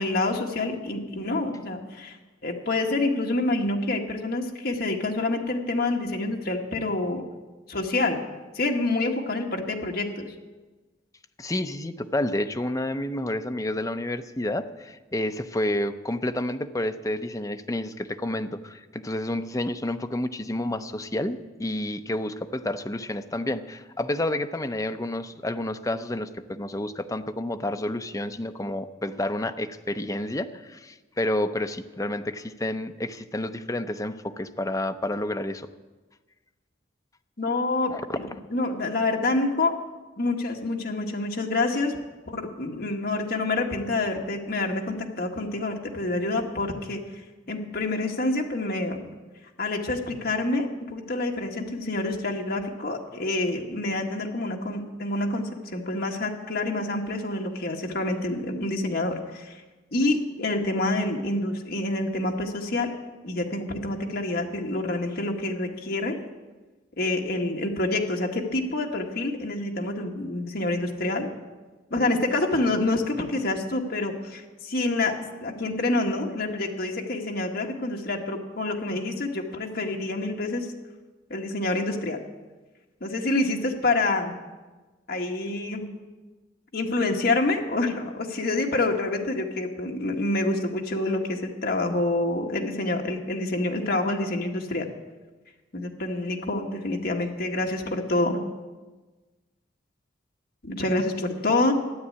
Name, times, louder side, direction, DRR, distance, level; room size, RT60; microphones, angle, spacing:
voice 1, 0.0-2.2 2.4-7.2 7.7-8.2 8.5-10.3 37.4-38.0 38.5-39.8 40.2-42.0 42.3-47.0 47.5-49.1 49.6-59.6 59.9-62.9 63.2-66.1 67.0-71.3 71.9-80.7 81.3-82.2 83.0-84.3 85.1-85.9 86.7-94.9 95.7-98.4 100.6-101.7, left 2 dB, 55° left, 1 dB, 1.5 m, -27 dB
voice 2, 11.4-35.7 37.9-38.0, left 1 dB, 15° left, 7 dB, 0.6 m, -30 dB
12.5 x 9.4 x 8.6 m, 1.2 s
head